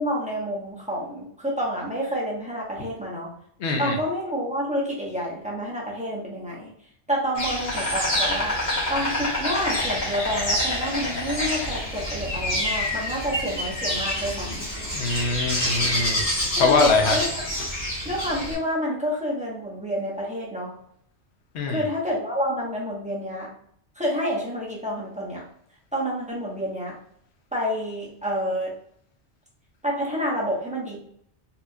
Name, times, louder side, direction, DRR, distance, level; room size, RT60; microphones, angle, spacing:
voice 1, 0.0-3.3 3.8-6.7 7.1-8.6 8.9-14.7 16.6-17.3 18.0-20.7 21.7-23.5 23.9-25.5 25.9-27.0 27.5-28.7 29.8-31.0, equal, 5° right, -4 dB, 0.8 m, -28 dB
voice 2, 3.6-3.9 14.9-16.2 16.6-17.2 21.5-21.8, left 4 dB, 70° left, 3 dB, 1.0 m, -23 dB
Insect, 7.3-18.5, left 1 dB, 40° left, 1.2 m, -27 dB
4.2 x 2.3 x 2.6 m, 0.67 s
omnidirectional pair, 1.2 m